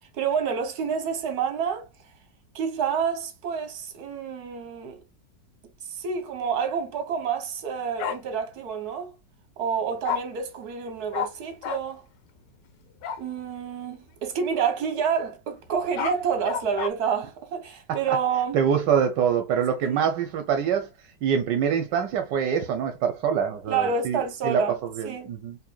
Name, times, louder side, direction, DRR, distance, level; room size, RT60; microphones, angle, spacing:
voice 1, 0.1-1.9 2.5-5.0 5.9-9.1 9.6-12.0 13.2-18.6 19.8-20.1 23.7-24.8 25.0-25.3, right 6 dB, 60° right, 1.5 m, -28 dB
Bark, 8.0-8.2 10.0-10.2 11.1-11.3 11.6-11.8 13.0-13.2 15.7-16.9, left 8 dB, 75° left, 1.4 m, -29 dB
voice 2, 18.5-20.9 21.2-25.6, right 7 dB, 80° right, 1.3 m, -25 dB
4.8 x 3.3 x 2.2 m
omnidirectional pair, 1.9 m